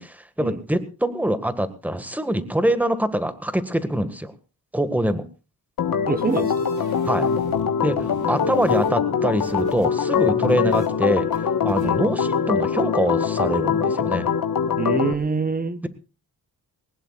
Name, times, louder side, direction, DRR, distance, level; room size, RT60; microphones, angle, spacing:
voice 1, 0.0-4.3 4.7-5.2 7.1-7.3 7.8-11.3 11.6-14.3, equal, 5° right, 11 dB, 1.8 m, -24 dB
Organ, 5.8-15.1, left 7 dB, 60° left, 1.5 m, -23 dB
voice 2, 6.1-6.7 11.8-12.0 14.8-15.8, right 4 dB, 25° right, 13 dB, 1.1 m, -25 dB
sound 1, 6.2-7.7 7.9-9.9 10.2-10.9 11.3-11.4 11.7-11.9, right 4 dB, 70° right, 5.2 m, -44 dB
21.5 x 19.0 x 2.4 m, 0.33 s
cardioid pair, 100°, 37 cm